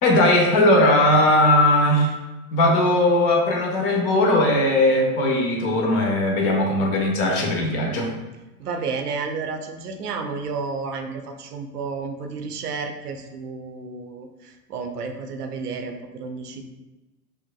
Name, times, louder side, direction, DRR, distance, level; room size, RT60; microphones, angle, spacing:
voice 1, 0.0-2.1 2.5-8.1, left 1 dB, 45° left, 0 dB, 1.0 m, -19 dB
voice 2, 8.6-16.7, right 4 dB, 80° right, 5 dB, 0.6 m, -31 dB
4.8 x 2.5 x 2.2 m, 1.1 s
hypercardioid pair, 95°, 45 cm